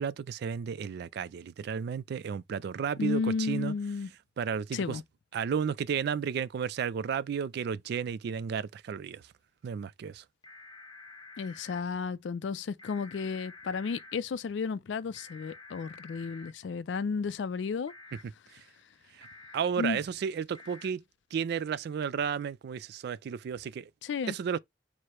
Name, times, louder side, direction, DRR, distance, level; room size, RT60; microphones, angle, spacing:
voice 1, 0.0-3.7 4.4-5.0 5.3-9.2 9.6-10.2 18.5-18.6 19.2-19.3 19.5-21.0 21.3-23.9 24.3-24.6, right 7 dB, 60° right, 0.3 m, -33 dB
voice 2, 3.0-4.1 4.7-5.0 11.4-17.9 19.8-20.0 24.0-24.3, left 5 dB, 75° left, 0.4 m, -33 dB
sound 1, 10.4-11.8 12.8-14.2 15.1-16.5 17.9-18.2 19.2-19.6 20.5-20.9, left 3 dB, 25° left, 0.8 m, -50 dB
4.7 x 2.1 x 4.2 m
head